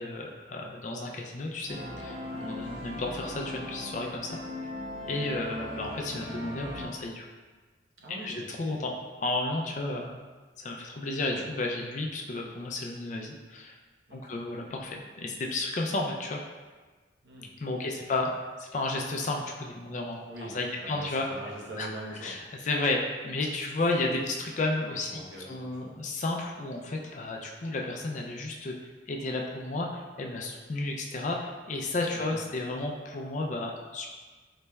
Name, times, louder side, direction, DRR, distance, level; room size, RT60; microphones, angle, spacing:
voice 1, 0.0-4.4 5.1-7.2 8.2-8.9 9.2-10.2 10.6-13.8 14.1-16.4 17.6-18.3 18.6-20.2 20.5-21.3 21.8-21.9 22.2-22.4 22.6-25.2 25.5-28.7 29.1-34.1, left 2 dB, 40° left, 0 dB, 0.4 m, -32 dB
sound 1, 1.7-6.8, left 1 dB, 25° right, 0.7 m, -39 dB
voice 2, 5.0-5.3 8.0-8.8 11.1-11.5 14.1-14.5 17.2-17.6 17.8-18.1 20.2-22.5 24.0-24.1 25.1-26.1 32.1-32.4, right 1 dB, 75° right, -4 dB, 0.8 m, -44 dB
4.0 x 3.2 x 2.2 m, 1.3 s
head